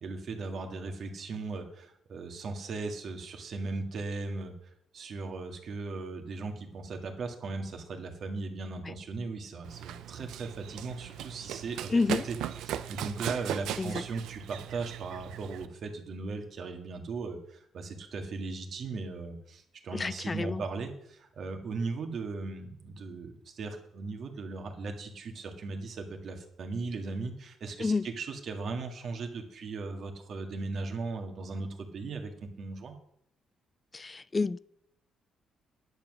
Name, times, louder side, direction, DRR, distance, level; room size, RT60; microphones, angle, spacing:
voice 1, 0.0-4.5 4.9-12.4 12.7-32.9, right 3 dB, 60° right, 2.0 m, -38 dB
Run, 9.6-15.7, right 11 dB, 85° right, 0.5 m, -38 dB
voice 2, 11.9-12.2 13.8-14.0 19.9-20.6 27.8-28.1 33.9-34.6, left 3 dB, 25° left, 0.3 m, -29 dB
10.5 x 7.4 x 6.3 m
cardioid pair, 90°, 0 cm